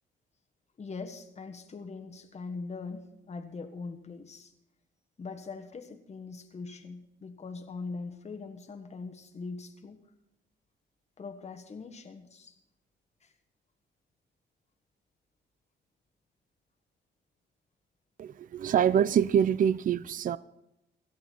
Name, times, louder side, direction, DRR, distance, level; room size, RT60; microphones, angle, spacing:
voice 1, 0.8-4.5 5.2-10.0 11.2-12.5 13.2-13.3, left 4 dB, 35° left, 1.4 m, -41 dB
voice 2, 18.2-20.4, right 9 dB, 45° right, 0.4 m, -25 dB
17.5 x 12.5 x 4.5 m
cardioid pair, 90°, 20 cm